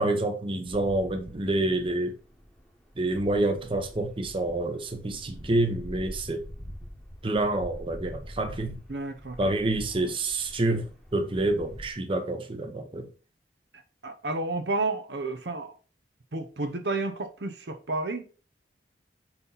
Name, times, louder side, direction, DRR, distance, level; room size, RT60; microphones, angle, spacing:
voice 1, 0.0-2.1 3.0-6.4 7.2-8.8 9.4-13.1, right 2 dB, 30° right, 0.8 m, -28 dB
sound 1, 0.7-11.9, equal, 5° left, 1.1 m, -45 dB
voice 2, 8.9-9.4 13.7-15.7 16.3-18.3, right 2 dB, 75° right, 0.8 m, -31 dB
4.3 x 4.1 x 5.4 m
head